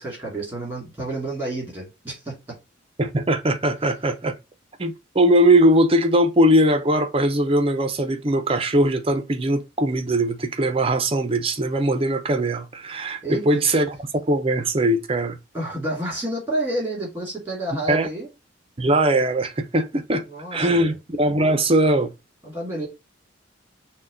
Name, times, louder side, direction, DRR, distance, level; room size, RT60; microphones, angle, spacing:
voice 1, 0.0-2.3 13.2-13.8 15.5-18.3 20.2-21.0 22.4-22.9, right 1 dB, 10° right, 2.3 m, -30 dB
voice 2, 3.0-4.4 4.8-14.0 14.3-15.4 17.9-18.1 18.8-20.2 20.5-22.1, right 1 dB, 30° right, 0.5 m, -20 dB
6.2 x 2.2 x 3.8 m
head